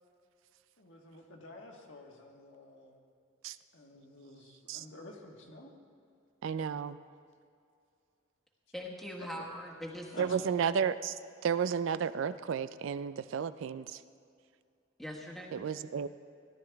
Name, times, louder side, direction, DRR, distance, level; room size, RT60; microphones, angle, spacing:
voice 1, 0.8-3.0 3.7-5.7 9.3-9.4 10.1-10.5, left 2 dB, 65° left, 0 dB, 1.5 m, -50 dB
voice 2, 6.4-7.0 10.2-14.0 15.5-16.1, right 7 dB, 65° right, 14 dB, 0.3 m, -32 dB
voice 3, 8.7-10.1 15.0-15.6, equal, ahead, -2 dB, 1.4 m, -42 dB
17.5 x 12.0 x 3.5 m, 2.4 s
head